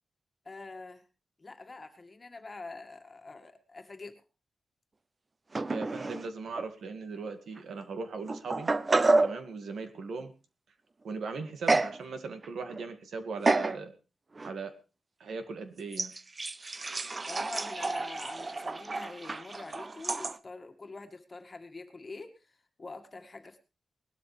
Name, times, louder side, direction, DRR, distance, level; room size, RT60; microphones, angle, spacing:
voice 1, 0.5-1.1 1.4-4.2 17.2-23.6, left 3 dB, 30° left, 6 dB, 1.9 m, -45 dB
sound 1, 5.5-6.3 6.5-6.7 7.6-7.7 8.3-9.4 11.7-12.0 12.4-12.8 13.5-13.8 14.4-14.5 15.9-20.4, right 3 dB, 30° right, 0.6 m, -29 dB
voice 2, 5.7-8.7 9.2-10.3 11.0-13.9 14.4-14.7 15.2-16.1, right 4 dB, 90° right, 7 dB, 2.1 m, -38 dB
20.0 x 12.5 x 3.4 m, 0.31 s
wide cardioid pair, 115°, 0 cm